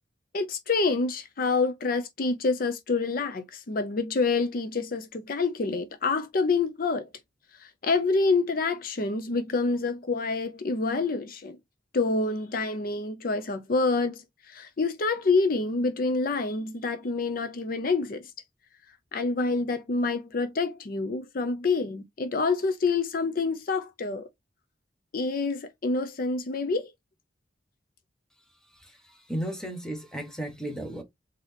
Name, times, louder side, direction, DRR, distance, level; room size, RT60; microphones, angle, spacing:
voice 1, 0.3-7.1 7.6-11.6 11.9-18.3 19.1-24.3 25.1-26.9, left 3 dB, 50° left, 0.5 m, -27 dB
voice 2, 28.8-31.0, right 1 dB, 5° left, 1.1 m, -35 dB
4.0 x 3.8 x 3.3 m
head